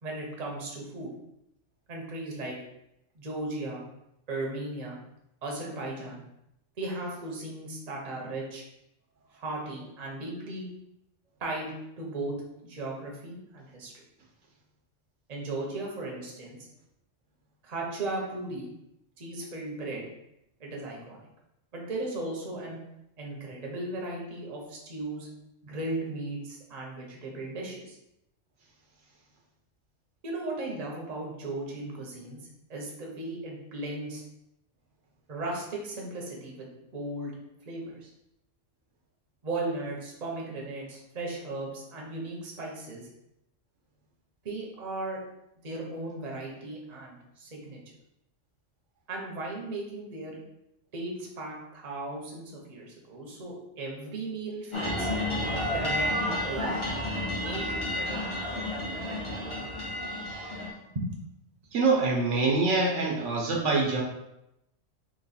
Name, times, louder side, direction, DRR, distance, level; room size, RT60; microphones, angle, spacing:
voice 1, 0.0-1.1 1.9-2.6 3.1-3.8 4.3-5.0 5.4-6.2 6.8-8.6 9.3-10.7 11.4-12.3 12.6-13.9 15.3-16.6 17.6-18.7 19.2-20.0 20.6-21.3 21.7-22.8 23.2-25.3 25.6-28.0 30.2-32.4 32.7-34.2 35.3-37.3 37.7-38.1 39.4-43.1 44.4-45.2 45.6-47.8 49.1-50.4 50.9-55.1 55.7-57.1 57.4-58.3 60.9-61.2, right 2 dB, 35° right, -2 dB, 0.8 m, -36 dB
sound 1, 54.7-60.7, left 1 dB, 30° left, 0.7 m, -31 dB
voice 2, 61.7-64.0, right 3 dB, 70° right, -1 dB, 1.0 m, -25 dB
3.1 x 3.0 x 4.1 m, 0.85 s
omnidirectional pair, 1.3 m